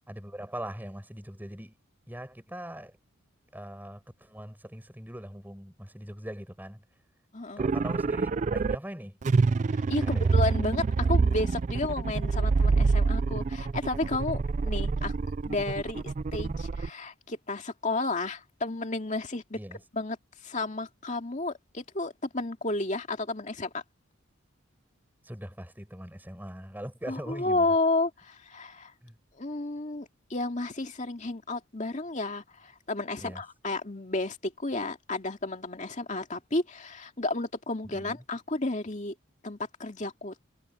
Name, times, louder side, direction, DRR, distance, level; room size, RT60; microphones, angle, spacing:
voice 1, 0.1-1.7 2.1-2.9 3.5-6.8 7.6-9.2 10.0-10.5 19.5-19.8 25.2-27.7 29.0-29.1 33.2-33.4 37.8-38.2, equal, 10° right, 6.9 m, -41 dB
voice 2, 7.3-7.6 9.9-15.1 15.5-19.6 19.9-20.2 20.4-23.8 27.1-28.9 29.4-39.1 39.4-40.3, left 2 dB, 35° left, 2.3 m, -32 dB
sound 1, 7.6-8.8 9.2-16.9, right 4 dB, 35° right, 0.3 m, -26 dB
head